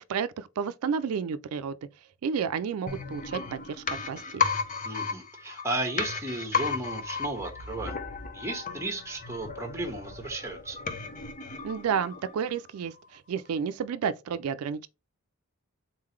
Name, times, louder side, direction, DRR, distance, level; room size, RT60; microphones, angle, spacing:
voice 1, 0.1-1.8 2.2-4.4 11.6-14.9, right 7 dB, 85° right, 0.4 m, -31 dB
sound 1, 2.9-12.6 12.9-13.0, left 5 dB, 40° left, 0.7 m, -34 dB
voice 2, 4.8-8.0 8.3-10.8, right 2 dB, 15° right, 1.2 m, -34 dB
3.9 x 3.7 x 3.1 m
head